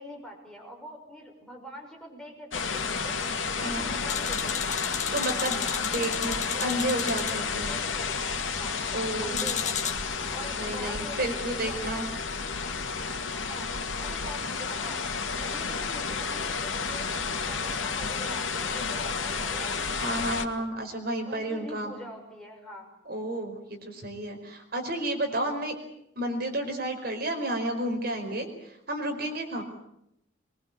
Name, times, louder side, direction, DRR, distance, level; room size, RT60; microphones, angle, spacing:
voice 1, 0.0-3.2 3.6-4.8 5.4-6.7 7.7-8.8 9.2-9.9 10.3-12.0 13.4-15.0 15.3-20.7 21.2-22.9, equal, 5° left, -1 dB, 6.0 m, -44 dB
sound 1, 2.5-20.5, left 5 dB, 85° left, 2.2 m, -31 dB
voice 2, 3.6-3.9 5.1-5.6 5.9-6.3 6.6-7.7 8.9-9.5 10.5-12.1 20.0-21.9 23.0-25.7 26.2-28.5 28.9-29.6, right 1 dB, 50° right, 4 dB, 5.0 m, -31 dB
sound 2, 4.1-7.4 9.3-10.0, left 8 dB, 35° left, 1.8 m, -33 dB
23.0 x 23.0 x 8.6 m, 0.78 s
head